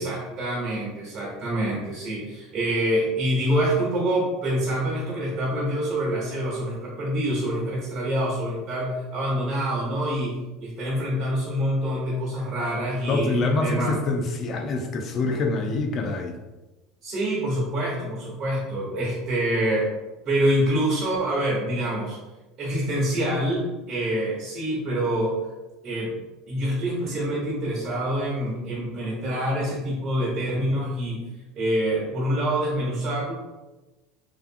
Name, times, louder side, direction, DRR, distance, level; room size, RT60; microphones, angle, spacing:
voice 1, 0.0-14.0 17.0-19.9 20.2-22.2 22.6-25.4 25.8-31.2 31.6-33.3, right 1 dB, 45° right, -4 dB, 0.9 m, -26 dB
voice 2, 13.1-16.4, left 3 dB, 45° left, 4 dB, 0.4 m, -25 dB
2.5 x 2.4 x 2.6 m, 1.1 s
hypercardioid pair, 85°, 0 cm